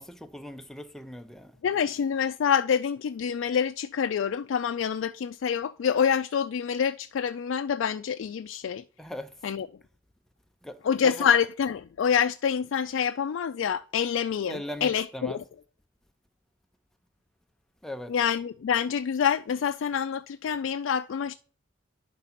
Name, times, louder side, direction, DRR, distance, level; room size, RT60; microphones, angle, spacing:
voice 1, 0.0-1.5 9.0-9.3 10.6-11.3 14.5-15.4 17.8-18.1, left 1 dB, ahead, 0.5 m, -39 dB
voice 2, 1.6-8.8 9.4-9.7 10.8-15.4 18.1-21.3, left 7 dB, 75° left, 0.3 m, -26 dB
10.5 x 3.9 x 5.8 m
head